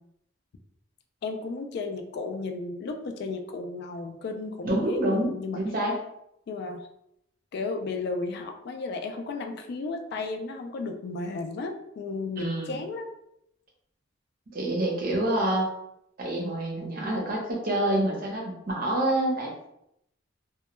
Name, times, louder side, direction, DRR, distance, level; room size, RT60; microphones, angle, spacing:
voice 1, 1.2-5.6 6.5-6.9 7.5-13.1, left 3 dB, 55° left, 5 dB, 0.3 m, -34 dB
voice 2, 4.6-6.0 12.4-12.8 14.5-15.7 16.2-19.7, right 1 dB, 50° right, -1 dB, 0.7 m, -27 dB
2.2 x 2.1 x 2.9 m, 0.78 s
head